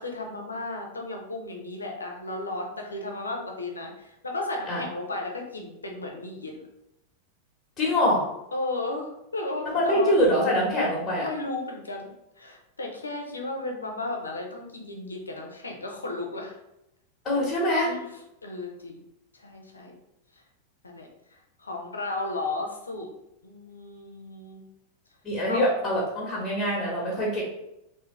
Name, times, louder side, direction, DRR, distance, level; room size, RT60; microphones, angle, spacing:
voice 1, 0.0-6.6 8.5-10.2 10.7-12.1 12.4-16.6 17.9-18.1 18.4-19.1 19.3-20.0 20.8-23.1 23.4-24.6 25.5-25.7, left 2 dB, 75° left, 2 dB, 0.7 m, -34 dB
voice 2, 7.8-8.2 9.6-11.3 17.2-17.9 25.2-27.4, equal, 20° left, -5 dB, 1.2 m, -24 dB
3.6 x 2.8 x 3.1 m, 0.86 s
figure-of-eight pair, 90°, 0 cm